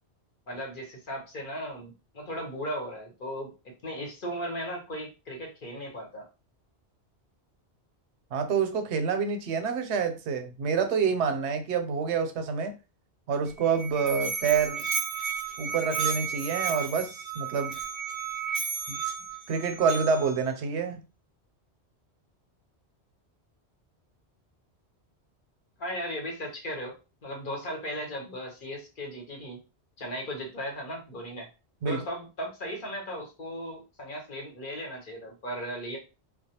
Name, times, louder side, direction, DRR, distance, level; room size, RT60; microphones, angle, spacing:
voice 1, 0.5-3.5 3.8-6.3 25.8-26.9 27.2-29.6 30.0-31.5 31.9-36.0, equal, 55° left, 1.0 m, -36 dB
voice 2, 8.3-12.7 13.3-14.8 15.6-17.8 18.9-19.0 19.5-21.0 31.8-32.0, right 6 dB, 90° right, 0.9 m, -27 dB
Musical instrument, 13.5-20.4, right 6 dB, 60° right, 0.7 m, -33 dB
2.3 x 2.2 x 2.8 m
omnidirectional pair, 1.1 m